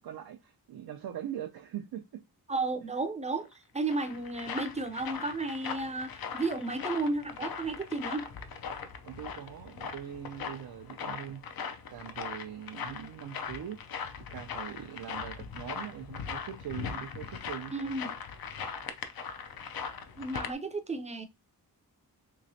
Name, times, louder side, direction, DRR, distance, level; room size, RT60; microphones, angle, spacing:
voice 1, 0.0-2.2 9.0-11.4 11.9-13.8 14.3-17.7, right 10 dB, 85° right, 0.5 m, -41 dB
voice 2, 2.5-3.5 3.7-8.3 17.7-18.1 20.2-21.2, right 3 dB, 20° right, 0.5 m, -33 dB
sound 1, 3.5-20.5, left 6 dB, 75° left, 0.6 m, -40 dB
3.2 x 3.1 x 2.6 m
wide cardioid pair, 135°, 36 cm